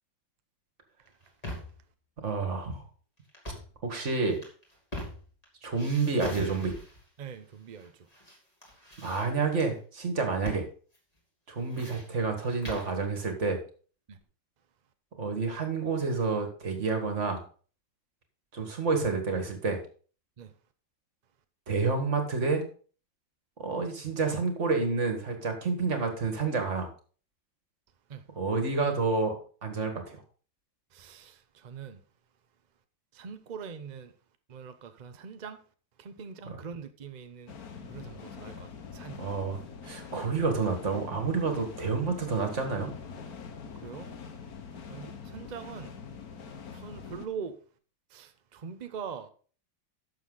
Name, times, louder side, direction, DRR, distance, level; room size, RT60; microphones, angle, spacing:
sound 1, 1.1-1.8 3.3-3.8 4.3-5.4 5.7-7.0 7.8-8.4 8.6-9.7 10.4-10.7 10.9-11.0 11.5-13.0, left 1 dB, 20° left, 2.9 m, -41 dB
voice 1, 2.2-2.9 3.8-4.4 5.6-6.8 9.0-10.7 11.5-13.6 15.2-17.4 18.5-19.8 21.7-22.7 23.6-26.9 28.3-29.3 29.6-30.2 36.5-36.6 39.2-42.9, right 4 dB, 40° right, 2.0 m, -29 dB
voice 2, 7.2-8.1 14.1-14.2 20.4-20.5 28.1-28.3 30.9-32.0 33.1-34.1 34.5-35.6 36.0-39.2 43.8-44.1 44.9-46.0 46.7-47.6 48.1-49.3, right 6 dB, 75° right, 0.4 m, -42 dB
sound 2, 37.5-47.3, left 6 dB, 55° left, 1.5 m, -44 dB
12.0 x 7.0 x 3.9 m
omnidirectional pair, 2.0 m